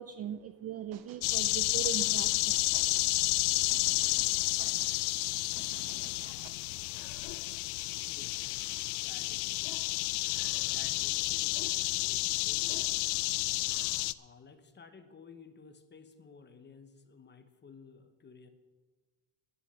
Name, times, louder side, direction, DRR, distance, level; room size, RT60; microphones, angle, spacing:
voice 1, 0.0-2.6, right 10 dB, 35° right, 10 dB, 0.4 m, -40 dB
sound 1, 0.9-1.3 1.8-3.1 3.7-5.0 5.6-6.5, right 10 dB, 50° right, 1.0 m, -54 dB
sound 2, 1.2-14.1, left 21 dB, 90° left, 0.6 m, -31 dB
voice 2, 7.9-8.5 8.8-9.8 10.2-11.7 12.1-13.0 14.2-18.5, left 5 dB, 20° left, 9 dB, 1.0 m, -54 dB
11.0 x 11.0 x 6.9 m, 1.3 s
cardioid pair, 145°, 49 cm